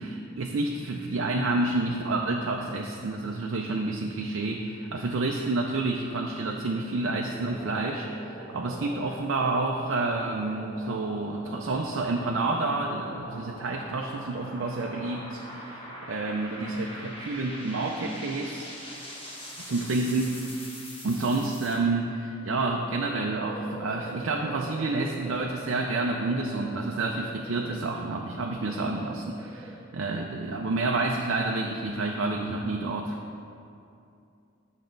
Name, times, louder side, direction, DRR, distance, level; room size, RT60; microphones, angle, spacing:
voice 1, 0.0-18.7 19.6-20.4 21.0-33.2, right 2 dB, 60° right, 0 dB, 0.5 m, -29 dB
sound 1, 7.2-21.8, equal, 25° left, 1.3 m, -43 dB
sound 2, 22.3-31.0, right 2 dB, 5° right, 0.7 m, -45 dB
8.8 x 6.3 x 3.9 m, 2.5 s
head